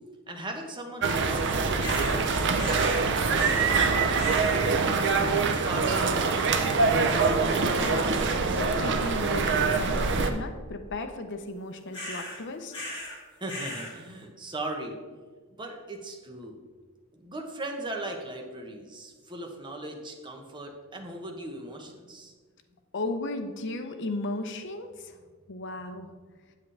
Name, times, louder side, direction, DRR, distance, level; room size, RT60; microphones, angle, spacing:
voice 1, 0.3-1.9 2.6-3.9 4.8-6.9 13.4-15.0 15.6-16.6 17.1-22.3 25.9-26.1, right 1 dB, 20° right, 2 dB, 0.9 m, -38 dB
sound 1, 1.0-10.3, right 4 dB, 55° right, 0.6 m, -24 dB
sound 2, 1.8-2.2 2.6-3.0 3.3-3.8 4.1-4.6 6.6-7.0 7.4-7.8 8.2-8.6 8.9-9.4 11.9-12.4 12.7-13.2 13.4-13.9, left 1 dB, 25° left, 2.6 m, -39 dB
voice 2, 7.8-12.7 22.9-25.2 25.5-26.1, left 2 dB, 55° left, 6 dB, 0.7 m, -35 dB
8.1 x 7.6 x 3.3 m, 1.5 s
head